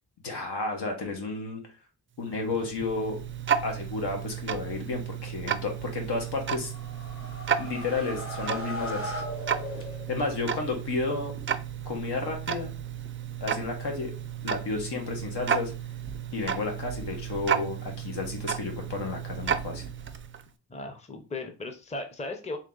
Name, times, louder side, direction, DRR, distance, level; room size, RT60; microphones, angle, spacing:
voice 1, 0.2-1.6 2.2-3.2 3.6-6.7 7.6-9.2 10.1-11.3 11.8-12.7 13.4-14.1 14.4-15.7 16.3-19.8, left 3 dB, 80° left, 2 dB, 1.4 m, -32 dB
Tick-tock, 2.2-20.5, right 8 dB, 35° right, 0.4 m, -33 dB
sound 1, 6.6-10.4, left 1 dB, 35° left, 1.1 m, -38 dB
voice 2, 20.7-22.6, left 2 dB, 15° left, 5 dB, 0.6 m, -36 dB
3.7 x 3.0 x 3.8 m, 0.33 s
wide cardioid pair, 110°, 40 cm